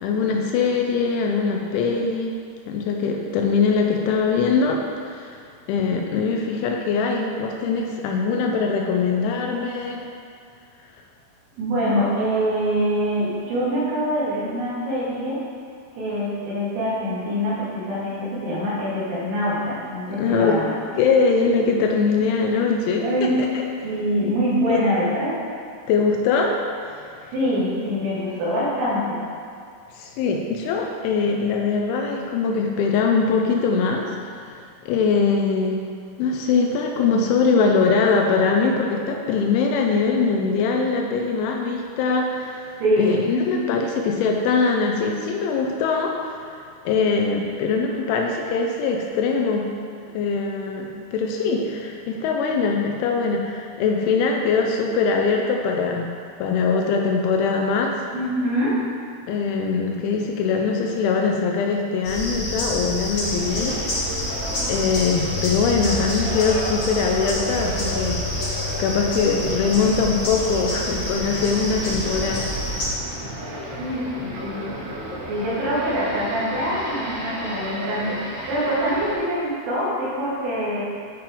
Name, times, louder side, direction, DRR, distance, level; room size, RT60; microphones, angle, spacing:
voice 1, 0.0-2.4 2.7-10.1 20.1-20.6 21.0-23.6 24.7-24.8 25.9-26.6 26.9-27.3 29.9-35.8 36.2-46.6 46.9-49.7 50.1-56.1 56.4-58.1 59.3-63.8 64.1-64.4 64.7-68.2 68.8-73.0, left 5 dB, 85° left, 2 dB, 2.8 m, -22 dB
voice 2, 11.6-15.4 15.9-20.7 23.0-23.3 23.8-25.4 27.2-29.2 42.8-43.6 58.1-58.9 73.6-74.7 75.2-80.8, equal, 85° right, -8 dB, 4.5 m, -24 dB
sound 1, 62.0-72.9, left 1 dB, 60° left, 1.8 m, -28 dB
sound 2, 63.2-79.2, right 1 dB, 65° right, 3.4 m, -33 dB
10.0 x 3.6 x 4.5 m, 2.3 s
omnidirectional pair, 5.7 m